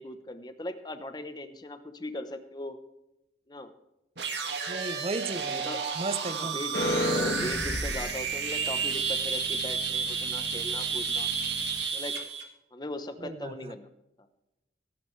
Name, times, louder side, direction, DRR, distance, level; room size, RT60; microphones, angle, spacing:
voice 1, 0.0-2.8 3.5-3.7 5.4-5.8 6.2-6.8 7.1-11.3 11.9-12.2 12.7-13.9, left 1 dB, 25° left, 0.9 m, -39 dB
sound 1, 4.2-12.4, right 5 dB, 75° right, 2.0 m, -31 dB
voice 2, 4.7-6.6 13.2-13.7, right 3 dB, 35° right, 0.6 m, -35 dB
sound 2, 6.7-11.8, left 1 dB, 70° left, 1.8 m, -34 dB
19.0 x 11.0 x 3.3 m
head